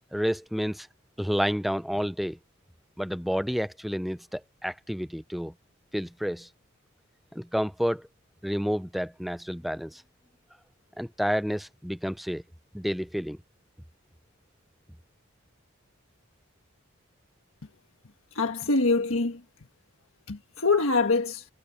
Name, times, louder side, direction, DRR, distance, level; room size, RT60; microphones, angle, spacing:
voice 1, 0.1-0.9 1.2-2.4 3.0-5.5 5.9-6.5 7.3-8.1 8.4-10.0 11.0-12.4 12.7-13.4, equal, ahead, 0.5 m, -30 dB
voice 2, 18.3-19.4 20.3-21.4, left 3 dB, 75° left, 1.4 m, -24 dB
head